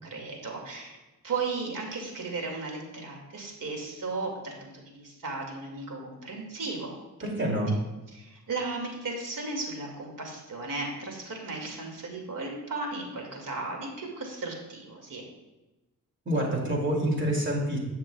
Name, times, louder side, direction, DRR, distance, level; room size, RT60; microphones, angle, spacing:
voice 1, 0.0-1.0 1.2-7.0 8.1-15.2, right 3 dB, 65° right, 0 dB, 2.2 m, -35 dB
voice 2, 7.2-7.8 16.3-17.8, right 1 dB, 35° right, -1 dB, 2.5 m, -27 dB
16.5 x 6.0 x 2.3 m, 1.1 s
wide cardioid pair, 110°, 34 cm